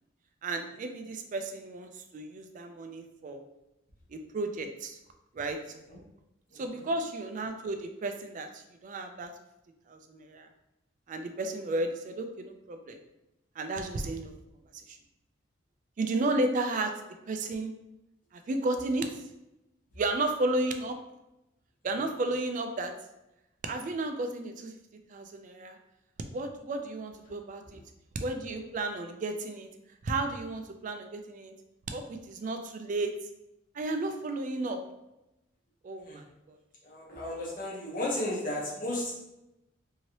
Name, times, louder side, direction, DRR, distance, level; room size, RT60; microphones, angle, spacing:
voice 1, 0.4-3.5 4.1-5.0 5.3-5.6 6.5-9.3 9.9-10.5 11.1-13.0 13.6-14.3 14.9-15.0 16.0-16.9 17.3-17.7 18.3-19.2 20.0-21.0 21.8-22.9 23.6-24.7 25.1-25.8 26.3-27.8 28.1-29.7 30.0-31.5 31.9-33.1 33.7-34.8 35.8-36.6, right 2 dB, 40° right, 6 dB, 0.3 m, -33 dB
voice 2, 6.5-6.8 36.1-36.2 36.8-39.2, left 1 dB, 45° left, -4 dB, 0.9 m, -34 dB
3.0 x 2.7 x 2.8 m, 0.92 s
head